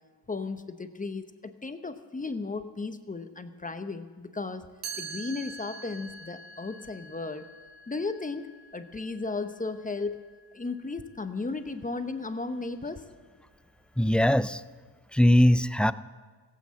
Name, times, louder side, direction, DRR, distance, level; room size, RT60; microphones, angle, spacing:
voice 1, 0.3-4.7 5.0-7.5 7.9-10.2 10.5-13.0, left 3 dB, 20° left, 9 dB, 0.9 m, -35 dB
Chime, 4.8-10.7, right 4 dB, 75° right, 2.1 m, -44 dB
voice 2, 14.0-14.6 15.1-15.9, equal, 5° left, 15 dB, 0.3 m, -21 dB
15.0 x 8.6 x 7.5 m, 1.4 s
cardioid pair, 70°, 39 cm